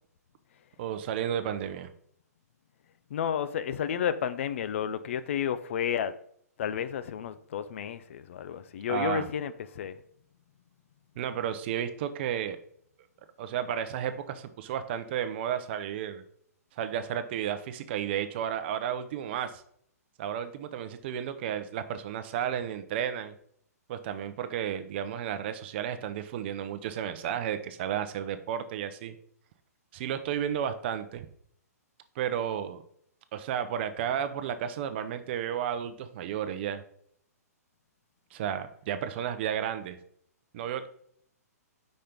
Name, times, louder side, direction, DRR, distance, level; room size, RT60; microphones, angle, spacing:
voice 1, 0.8-1.9 8.9-9.3 11.2-12.6 13.4-16.2 16.8-19.6 20.2-23.3 23.9-29.1 29.9-31.3 32.2-32.8 33.3-36.8 38.3-40.0 40.5-40.9, right 9 dB, 40° right, 0.6 m, -32 dB
voice 2, 3.1-6.2 6.6-10.0, left 8 dB, 50° left, 0.4 m, -31 dB
5.3 x 4.3 x 5.2 m
figure-of-eight pair, 120°, 9 cm